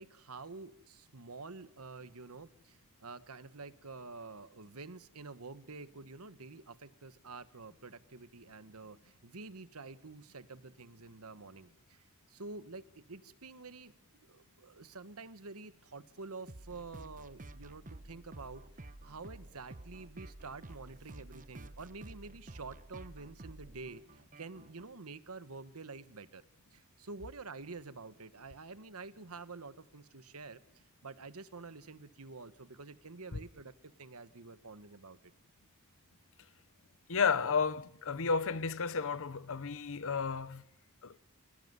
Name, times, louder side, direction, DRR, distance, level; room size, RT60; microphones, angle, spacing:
voice 1, 0.0-13.9 14.2-26.4 26.7-30.6 31.0-33.7 34.0-35.2, right 3 dB, 75° right, 1.3 m, -48 dB
sound 1, 16.5-24.9, right 2 dB, 35° right, 1.1 m, -51 dB
voice 2, 37.1-40.6 41.0-41.2, left 5 dB, 65° left, 1.0 m, -32 dB
27.0 x 17.5 x 9.7 m
head